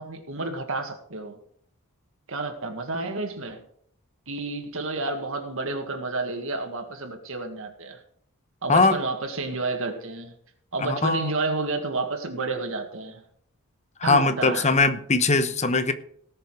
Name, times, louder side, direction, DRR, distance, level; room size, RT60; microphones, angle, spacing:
voice 1, 0.0-1.4 2.3-3.6 4.3-8.0 8.6-10.3 10.7-13.2 14.0-14.7, right 3 dB, 65° right, 4 dB, 1.9 m, -30 dB
voice 2, 10.8-11.3 14.0-15.9, left 3 dB, 30° left, 11 dB, 0.9 m, -21 dB
18.0 x 6.8 x 4.9 m, 0.64 s
head